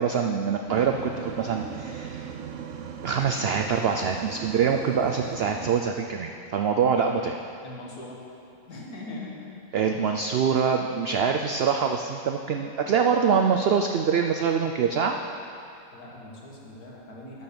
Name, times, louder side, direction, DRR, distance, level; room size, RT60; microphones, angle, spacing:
voice 1, 0.0-2.3 3.0-7.3 9.7-15.2, right 6 dB, 80° right, 4 dB, 0.5 m, -24 dB
sound 1, 0.7-5.7, right 7 dB, 60° right, 0.9 m, -38 dB
voice 2, 7.6-8.2 8.7-9.5 15.9-17.4, left 2 dB, 80° left, -3 dB, 2.1 m, -40 dB
12.0 x 5.5 x 6.8 m, 2.7 s
omnidirectional pair, 1.6 m